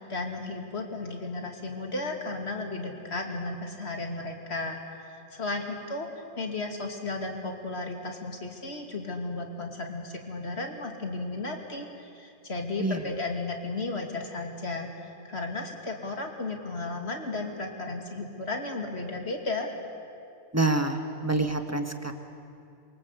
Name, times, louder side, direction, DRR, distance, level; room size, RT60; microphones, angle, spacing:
voice 1, 0.0-19.7, left 2 dB, 75° left, 3 dB, 2.9 m, -34 dB
voice 2, 20.5-21.0 21.2-22.1, right 2 dB, 15° right, 6 dB, 1.6 m, -26 dB
27.0 x 24.0 x 8.3 m, 2.5 s
omnidirectional pair, 1.1 m